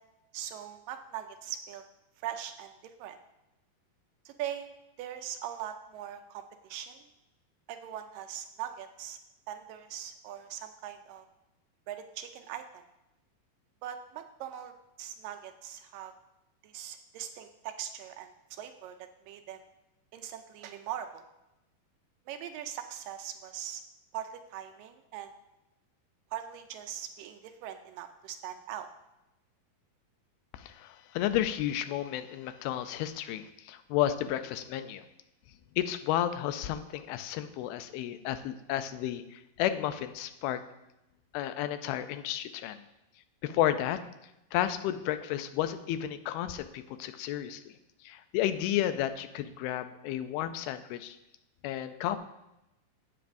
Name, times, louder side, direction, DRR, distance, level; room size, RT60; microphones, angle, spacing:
voice 1, 0.3-1.8 2.2-3.2 4.3-7.1 7.7-9.2 9.5-11.3 11.9-12.8 13.8-14.7 15.0-16.1 16.6-19.6 20.1-21.2 22.3-23.8 24.1-25.3 26.3-28.9, right 10 dB, 80° right, 7 dB, 2.1 m, -41 dB
voice 2, 30.5-35.1 35.8-40.6 41.3-42.8 43.4-44.0 44.5-47.6 48.0-51.2 51.6-52.2, left 12 dB, 90° left, 10 dB, 2.5 m, -32 dB
12.5 x 8.6 x 2.6 m, 0.92 s
omnidirectional pair, 4.3 m